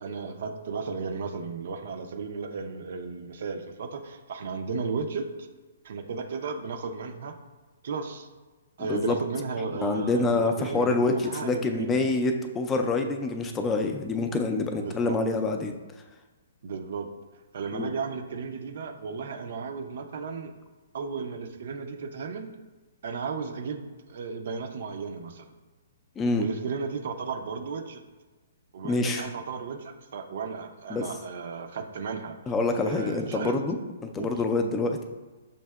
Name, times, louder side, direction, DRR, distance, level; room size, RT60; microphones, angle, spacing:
voice 1, 0.0-5.3 5.8-7.3 7.8-8.3 8.8-12.0 14.8-15.2 16.6-17.1 17.5-20.5 20.9-22.5 23.0-25.5 26.4-28.0 28.7-32.4 32.8-33.6 34.2-34.3, right 5 dB, 60° right, 6 dB, 0.5 m, -34 dB
voice 2, 8.8-9.2 9.8-15.7 17.7-17.9 26.2-26.5 28.8-29.3 30.9-31.1 32.5-33.8 34.0-35.0, left 3 dB, 15° left, 5 dB, 0.4 m, -26 dB
6.4 x 2.6 x 2.3 m, 1.3 s
figure-of-eight pair, 130°, 0 cm